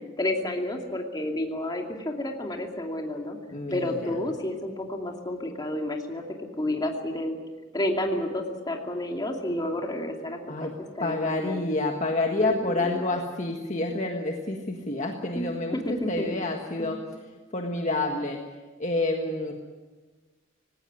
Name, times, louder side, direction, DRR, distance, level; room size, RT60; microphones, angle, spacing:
voice 1, 0.2-3.4 3.7-7.4 7.7-10.7 11.0-11.6 12.4-13.1 15.3-16.3 16.8-16.9, left 1 dB, 20° left, 2 dB, 2.6 m, -30 dB
voice 2, 3.5-4.2 10.5-10.7 11.0-17.0 17.5-18.4 18.8-19.5, left 2 dB, 35° left, 2 dB, 1.6 m, -28 dB
19.5 x 17.5 x 9.7 m, 1.3 s
head